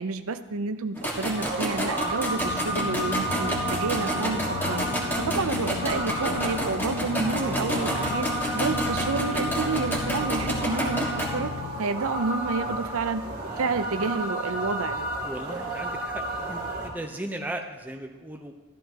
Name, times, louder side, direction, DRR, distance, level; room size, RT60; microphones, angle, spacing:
voice 1, 0.0-4.8 5.2-11.5 11.8-13.2 13.6-15.1, right 4 dB, 80° right, 10 dB, 0.6 m, -29 dB
sound 1, 0.9-11.3, equal, 10° left, 1.7 m, -31 dB
sound 2, 1.0-16.9, right 2 dB, 40° right, 2.3 m, -32 dB
sound 3, 2.4-11.8, left 6 dB, 70° left, 0.4 m, -35 dB
voice 2, 15.2-18.5, right 1 dB, 10° right, 3 dB, 0.7 m, -36 dB
14.5 x 13.0 x 3.0 m, 1.2 s
head